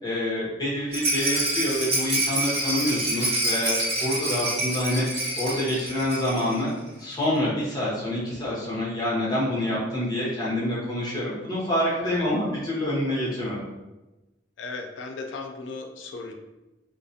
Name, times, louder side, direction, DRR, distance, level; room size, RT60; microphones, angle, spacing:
voice 1, 0.0-6.7 7.0-13.7, left 1 dB, 20° left, -7 dB, 0.8 m, -27 dB
Rattle, 0.9-6.6 6.9-7.0 7.2-7.3, right 1 dB, 30° right, 1.0 m, -27 dB
voice 2, 14.6-16.3, left 3 dB, 85° left, 4 dB, 0.4 m, -36 dB
2.4 x 2.0 x 2.6 m, 1.0 s
head